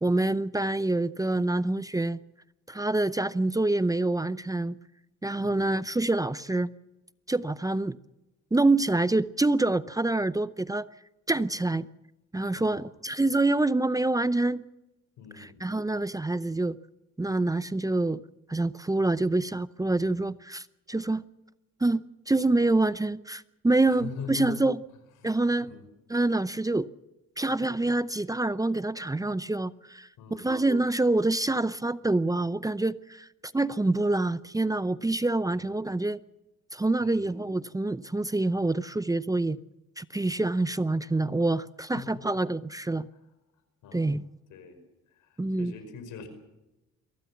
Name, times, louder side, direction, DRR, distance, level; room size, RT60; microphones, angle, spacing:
voice 1, 0.0-2.2 2.7-4.8 5.2-6.7 7.3-8.0 8.5-10.9 11.3-11.9 12.3-14.6 15.4-16.8 17.2-18.2 18.5-21.2 21.8-24.8 25.2-25.7 26.1-26.9 27.4-33.3 33.5-36.2 36.7-39.6 40.0-43.1 43.9-44.2 45.4-45.7, right 2 dB, 10° right, 0.7 m, -26 dB
voice 2, 12.5-12.9 15.2-15.6 23.9-24.7 25.2-25.3 25.6-25.9 30.2-30.5 35.5-35.7 37.0-37.3 41.9-42.2 43.8-44.1 44.5-44.8 45.1-46.3, left 7 dB, 90° left, 5.1 m, -42 dB
23.5 x 16.5 x 7.2 m
cardioid pair, 90°, 30 cm